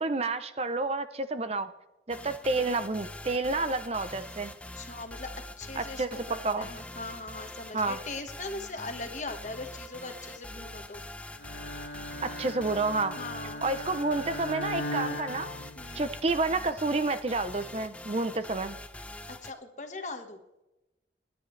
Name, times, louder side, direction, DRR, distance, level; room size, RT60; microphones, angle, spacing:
voice 1, 0.0-1.7 2.1-4.5 5.8-6.7 7.7-8.0 12.2-13.1 13.6-15.5 15.9-18.8, right 3 dB, 35° right, 11 dB, 0.6 m, -29 dB
sound 1, 2.1-19.5, left 1 dB, 5° left, 0.5 m, -44 dB
voice 2, 4.7-5.3 5.6-11.0 13.2-13.6 15.8-16.1 19.3-20.4, left 3 dB, 45° left, 6 dB, 1.5 m, -40 dB
Bowed string instrument, 11.4-16.4, left 1 dB, 85° left, 1.4 m, -38 dB
28.5 x 9.9 x 3.2 m, 0.96 s
head